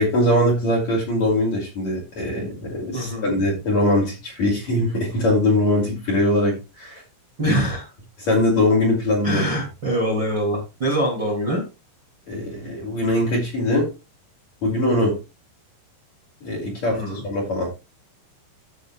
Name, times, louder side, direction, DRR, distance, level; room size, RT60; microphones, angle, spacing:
voice 1, 0.0-7.0 7.5-7.6 8.2-9.5 12.3-13.9 14.6-15.2 16.4-17.7, left 1 dB, 40° left, 0 dB, 3.2 m, -21 dB
voice 2, 2.9-3.4 7.4-7.8 9.2-11.6 16.9-17.2, right 1 dB, 30° right, -1 dB, 2.8 m, -24 dB
15.0 x 6.7 x 2.3 m, 0.28 s
omnidirectional pair, 5.9 m